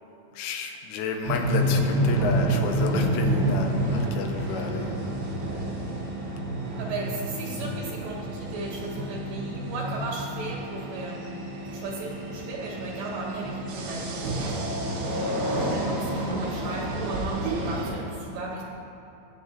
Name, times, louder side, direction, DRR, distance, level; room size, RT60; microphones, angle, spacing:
voice 1, 0.3-5.2, left 4 dB, 80° left, 4 dB, 3.2 m, -32 dB
sound 1, 1.2-17.9, right 1 dB, 90° right, 4.5 m, -29 dB
sound 2, 1.5-17.0, right 3 dB, 10° right, 0.4 m, -41 dB
voice 2, 6.8-11.4 11.7-14.4 14.7-18.6, right 2 dB, 75° right, -2 dB, 2.8 m, -36 dB
21.0 x 8.0 x 2.7 m, 2.9 s
omnidirectional pair, 5.8 m